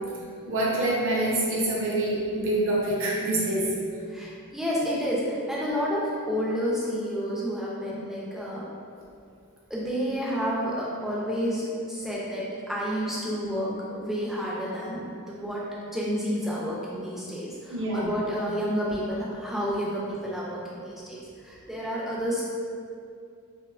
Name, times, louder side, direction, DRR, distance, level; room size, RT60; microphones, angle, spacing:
voice 1, 0.5-3.7 17.7-18.1, right 1 dB, 60° right, -5 dB, 0.5 m, -26 dB
voice 2, 4.1-8.7 9.7-22.4, equal, ahead, -6 dB, 0.3 m, -30 dB
2.6 x 2.1 x 2.3 m, 2.4 s
head